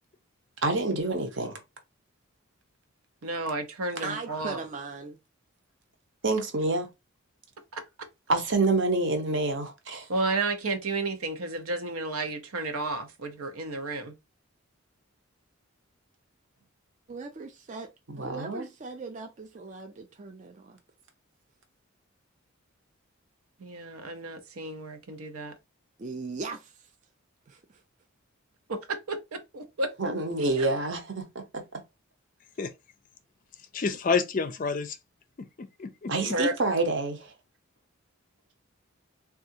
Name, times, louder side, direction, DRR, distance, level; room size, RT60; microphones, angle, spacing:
voice 1, 0.6-1.6 6.2-6.9 8.3-10.1 18.1-18.7 30.0-31.6 36.1-37.3, right 2 dB, 55° right, 0.8 m, -27 dB
voice 2, 3.2-4.6 7.7-7.8 10.1-14.1 23.6-25.5 28.7-30.1 30.4-30.7 36.3-36.5, right 2 dB, 85° right, 0.7 m, -32 dB
voice 3, 4.0-5.2 17.1-17.9 18.2-20.8 26.0-26.7 27.5-27.6, right 3 dB, 35° right, 0.4 m, -38 dB
voice 4, 33.7-35.0 35.6-36.3, left 5 dB, 40° left, 0.4 m, -29 dB
3.5 x 2.4 x 2.7 m
head